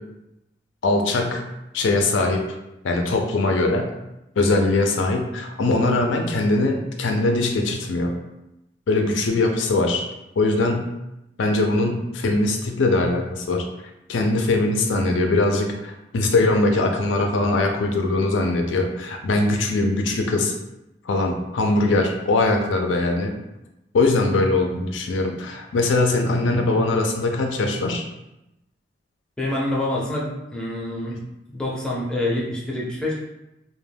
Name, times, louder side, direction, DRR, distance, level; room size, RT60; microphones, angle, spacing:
voice 1, 0.8-1.4 1.7-2.4 2.8-3.9 4.4-8.1 8.9-10.0 10.4-10.9 11.4-13.7 14.1-20.5 21.0-23.3 23.9-28.0, left 2 dB, 80° left, 3 dB, 0.4 m, -21 dB
voice 2, 29.4-31.2 31.5-33.2, left 1 dB, 5° left, -5 dB, 0.5 m, -26 dB
2.2 x 2.2 x 3.3 m, 0.91 s
head